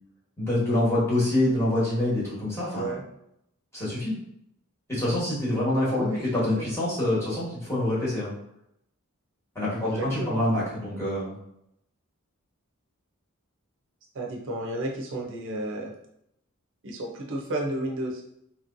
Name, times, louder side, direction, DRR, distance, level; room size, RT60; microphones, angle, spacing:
voice 1, 0.4-3.0 3.7-4.1 4.9-6.1 6.3-8.3 9.5-11.3, left 1 dB, 15° left, -8 dB, 1.3 m, -26 dB
voice 2, 5.9-6.2 6.6-6.7 9.8-10.4 14.1-15.9 16.8-18.2, right 1 dB, 60° right, -1 dB, 0.6 m, -32 dB
3.0 x 2.9 x 2.6 m, 0.78 s
head